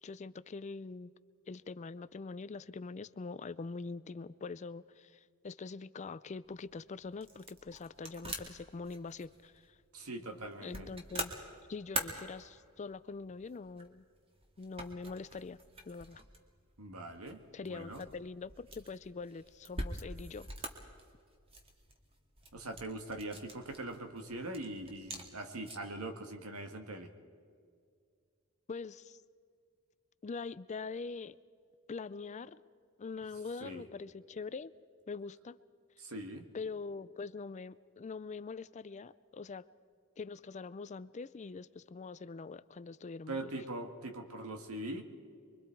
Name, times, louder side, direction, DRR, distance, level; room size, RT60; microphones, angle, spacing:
voice 1, 0.0-1.1 1.5-9.8 10.6-11.3 11.7-14.0 14.6-15.6 15.9-16.2 17.5-20.5 28.7-29.2 30.2-31.4 31.9-32.6 33.0-34.7 35.1-35.6 36.5-39.7 40.2-43.6, left 4 dB, 30° left, 16 dB, 0.4 m, -43 dB
sound 1, 6.4-26.0, right 2 dB, 25° right, 2.0 m, -46 dB
voice 2, 9.9-10.9 16.8-18.0 22.5-27.1 33.6-33.8 36.0-36.5 43.3-45.0, right 2 dB, 80° right, 6 dB, 1.9 m, -42 dB
25.0 x 24.0 x 4.6 m, 2.2 s
head